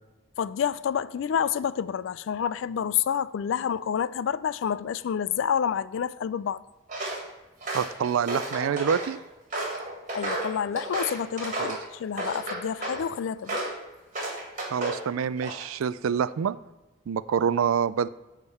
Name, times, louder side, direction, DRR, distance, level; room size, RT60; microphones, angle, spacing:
voice 1, 0.4-6.6 10.1-13.6, left 8 dB, 70° left, 0.3 m, -28 dB
Walk footsteps, 6.9-7.2 7.6-9.1 9.5-11.8 12.2-13.0 13.5-13.8 14.1-15.0 15.4-15.8, right 1 dB, 40° right, 1.8 m, -32 dB
voice 2, 7.7-9.2 11.6-11.8 14.7-16.6 17.1-18.1, right 7 dB, 90° right, 0.3 m, -26 dB
9.6 x 3.7 x 6.9 m
head